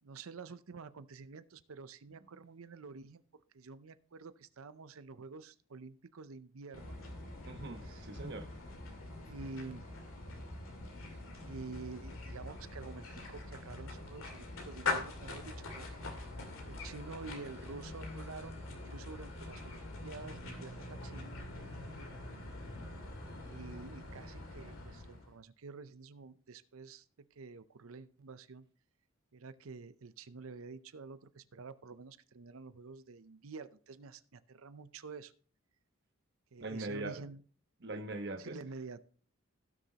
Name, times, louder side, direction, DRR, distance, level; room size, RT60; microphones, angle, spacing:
voice 1, 0.0-3.2 3.5-7.0 7.8-8.1 9.3-9.9 11.4-16.1 16.7-21.3 23.4-28.7 29.3-35.3 36.5-37.4 38.4-39.0, right 4 dB, 75° right, 0.6 m, -49 dB
sound 1, 6.7-25.4, left 3 dB, 70° left, 2.5 m, -44 dB
voice 2, 7.4-8.5 36.6-37.2 37.8-38.6, right 2 dB, 50° right, 1.2 m, -41 dB
sound 2, 20.2-25.1, right 3 dB, 45° left, 3.9 m, -54 dB
17.0 x 6.4 x 2.9 m
head